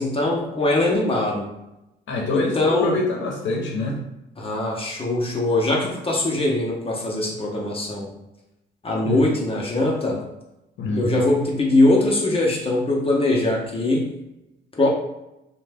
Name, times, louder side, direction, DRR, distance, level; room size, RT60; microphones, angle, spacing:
voice 1, 0.0-1.5 2.3-3.0 4.4-8.1 8.8-10.2 11.0-14.1 14.7-14.9, left 2 dB, 30° left, -2 dB, 0.7 m, -21 dB
voice 2, 2.1-4.0 9.0-9.2 10.8-11.1, left 2 dB, 70° left, 0 dB, 0.8 m, -25 dB
2.6 x 2.2 x 3.3 m, 0.92 s
cardioid pair, 90°, 20 cm